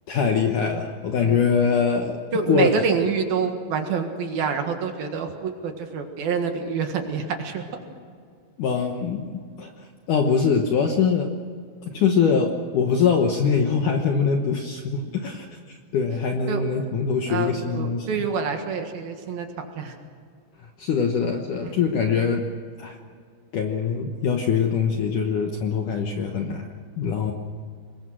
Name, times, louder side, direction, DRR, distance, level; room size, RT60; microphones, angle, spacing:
voice 1, 0.1-2.2 2.5-2.7 8.6-11.3 11.8-15.5 15.9-18.2 20.8-22.4 22.8-23.0 23.5-27.3, left 6 dB, 65° left, 3 dB, 2.0 m, -23 dB
voice 2, 2.3-7.6 16.5-16.6 17.3-19.9 21.6-21.8, right 6 dB, 65° right, 5 dB, 3.2 m, -27 dB
25.0 x 21.0 x 6.3 m, 2.2 s
omnidirectional pair, 5.1 m